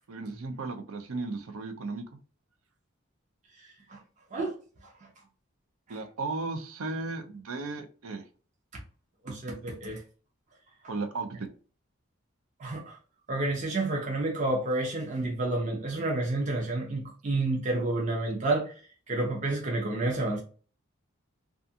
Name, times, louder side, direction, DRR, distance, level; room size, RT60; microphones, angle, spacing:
voice 1, 0.1-2.0 5.9-8.2 10.9-11.5, right 3 dB, 85° right, 0.5 m, -35 dB
voice 2, 3.6-4.0 4.3-4.5 9.2-10.0 12.6-13.0 13.3-18.8 19.1-20.4, right 2 dB, 35° right, 0.5 m, -30 dB
2.4 x 2.4 x 2.7 m
head